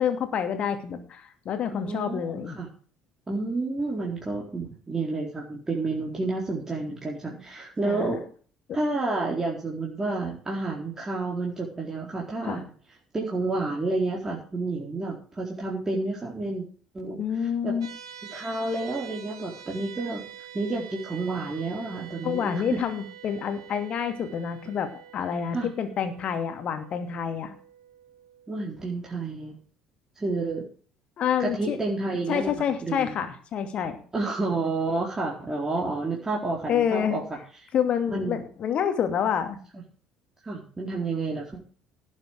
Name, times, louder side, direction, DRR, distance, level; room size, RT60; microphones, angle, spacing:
voice 1, 0.0-2.6 7.8-8.2 12.4-12.6 17.2-17.9 22.2-27.6 31.2-31.8 32.3-34.0 36.7-37.2 37.7-39.6, left 8 dB, 45° left, 7 dB, 2.6 m, -28 dB
voice 2, 1.7-2.7 3.3-8.2 8.7-12.6 13.1-16.6 16.9-17.2 17.6-17.7 18.3-20.2 20.5-22.8 25.5-25.7 28.5-29.6 30.2-30.6 31.4-33.2 34.1-37.2 38.1-38.4 40.4-41.6, right 3 dB, 20° right, -3 dB, 4.2 m, -30 dB
sound 1, 17.8-29.0, right 10 dB, 75° right, 1.7 m, -46 dB
18.0 x 7.5 x 4.9 m, 0.42 s
figure-of-eight pair, 55°, 3 cm